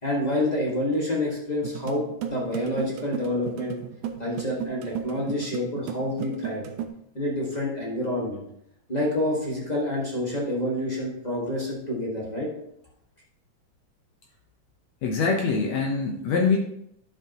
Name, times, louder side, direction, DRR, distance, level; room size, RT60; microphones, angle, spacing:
voice 1, 0.0-3.8 4.2-6.7 7.1-8.4 8.9-12.5, left 1 dB, 30° left, -4 dB, 0.7 m, -28 dB
sound 1, 1.6-6.9, right 9 dB, 75° right, 1.9 m, -35 dB
voice 2, 15.0-16.6, left 4 dB, 65° left, 1 dB, 1.9 m, -24 dB
11.0 x 7.3 x 2.9 m, 0.75 s
omnidirectional pair, 3.8 m